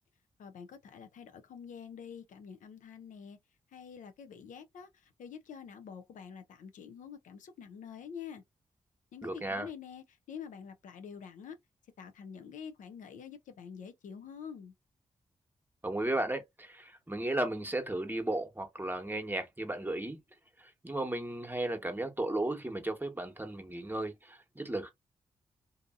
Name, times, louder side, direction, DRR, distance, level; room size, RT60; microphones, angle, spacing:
voice 1, 0.4-3.4 3.7-8.4 9.1-11.6 12.0-14.7, left 7 dB, 80° left, 0.5 m, -47 dB
voice 2, 9.2-9.7 15.8-20.2 20.6-24.9, right 1 dB, 15° right, 1.0 m, -35 dB
2.7 x 2.5 x 2.4 m
supercardioid pair, 45°, 13 cm